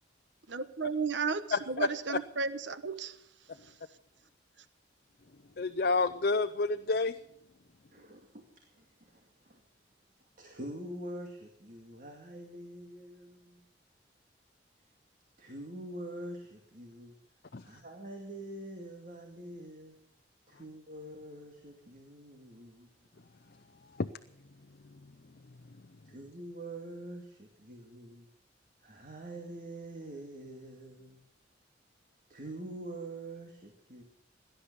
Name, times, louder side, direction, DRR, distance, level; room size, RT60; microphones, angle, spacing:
voice 1, 0.5-3.1, right 4 dB, 85° right, 13 dB, 1.1 m, -33 dB
voice 2, 1.5-1.9 5.6-7.1 17.5-17.6 24.0-24.1, left 3 dB, 55° left, 10 dB, 0.6 m, -29 dB
voice 3, 7.9-9.6 10.4-13.6 15.4-17.2 17.6-20.0 20.5-23.2 26.0-28.3 28.8-31.2 32.3-34.0, right 1 dB, 50° right, 2 dB, 2.3 m, -45 dB
18.0 x 11.5 x 6.9 m, 0.71 s
head